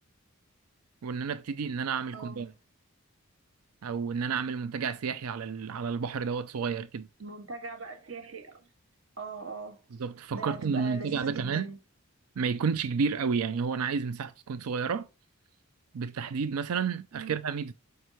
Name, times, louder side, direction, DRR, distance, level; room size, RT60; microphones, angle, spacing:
voice 1, 1.0-2.5 3.8-7.1 10.0-11.7 12.4-15.1 15.9-17.7, right 5 dB, 90° right, 0.5 m, -31 dB
voice 2, 2.1-2.5 7.2-8.7 9.2-9.8 10.3-11.8 17.1-17.4, right 4 dB, 65° right, 1.8 m, -40 dB
7.8 x 5.5 x 3.1 m
head